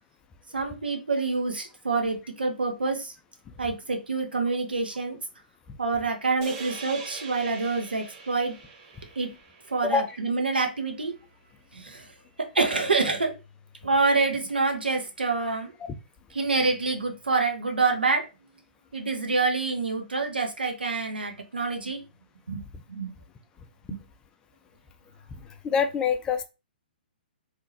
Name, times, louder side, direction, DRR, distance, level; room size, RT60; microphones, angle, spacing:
voice 1, 0.5-3.1 3.6-5.2 5.8-8.6 9.2-9.3 9.7-11.1 11.7-12.1 12.4-13.3 13.8-15.7 16.3-18.3 18.9-22.0 22.5-22.6 22.9-23.1 23.9-24.0, right 3 dB, 75° right, 4 dB, 1.0 m, -27 dB
sound 1, 6.4-10.8, right 5 dB, 35° right, 0.9 m, -43 dB
voice 2, 9.8-10.2 22.7-22.8 23.9-24.0 25.3-26.4, left 6 dB, 15° left, 8 dB, 0.4 m, -27 dB
3.6 x 2.7 x 2.9 m, 0.28 s
figure-of-eight pair, 125°, 5 cm